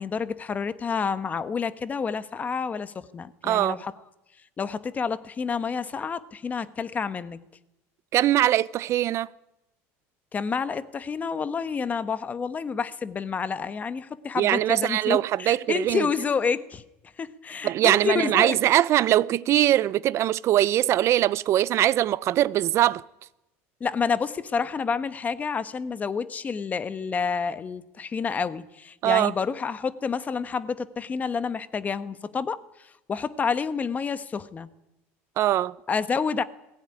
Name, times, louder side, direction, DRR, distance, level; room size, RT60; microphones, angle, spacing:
voice 1, 0.0-3.9 4.6-7.4 10.3-16.8 17.2-18.6 23.8-34.7 35.9-36.4, left 5 dB, 25° left, 1.3 m, -29 dB
voice 2, 3.4-3.8 8.1-9.3 14.4-16.1 17.6-23.0 29.0-29.3 35.4-35.7, right 13 dB, 50° right, 0.7 m, -22 dB
21.0 x 17.0 x 9.9 m
supercardioid pair, 120°, 6 cm